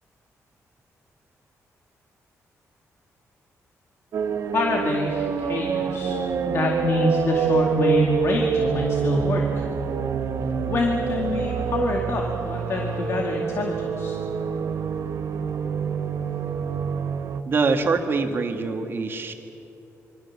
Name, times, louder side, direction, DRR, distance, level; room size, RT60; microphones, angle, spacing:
sound 1, 4.1-17.4, right 6 dB, 65° right, 1.3 m, -26 dB
voice 1, 4.5-6.2 6.5-9.6 10.7-14.2, left 3 dB, 50° left, 1 dB, 2.2 m, -26 dB
voice 2, 17.4-19.3, right 4 dB, 40° right, 5 dB, 2.1 m, -24 dB
27.0 x 24.0 x 7.4 m, 2.7 s
wide cardioid pair, 155°, 6 cm